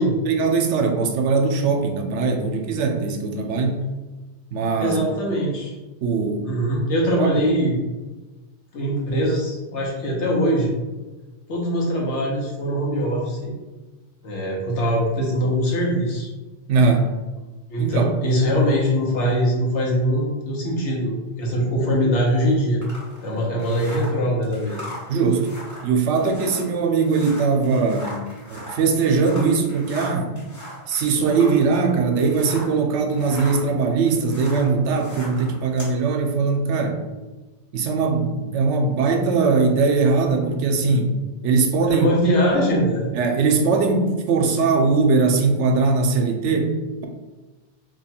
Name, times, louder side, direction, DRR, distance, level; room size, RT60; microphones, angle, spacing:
voice 1, 0.3-3.9 4.5-5.0 6.0-6.5 7.2-7.3 16.7-17.1 17.8-18.1 25.1-25.5 25.8-28.2 28.5-30.4 30.9-37.0 37.7-41.2 41.4-42.1 43.2-47.1, right 4 dB, 90° right, 4 dB, 0.9 m, -20 dB
voice 2, 4.8-5.7 6.4-7.8 8.7-10.7 11.5-13.5 14.2-16.3 17.7-22.8 23.2-24.8 41.9-43.1, equal, 85° left, -3 dB, 1.3 m, -22 dB
sound 1, 22.8-32.8 33.1-36.0, equal, 15° left, 1.0 m, -39 dB
3.0 x 2.3 x 4.2 m, 1.2 s
omnidirectional pair, 1.2 m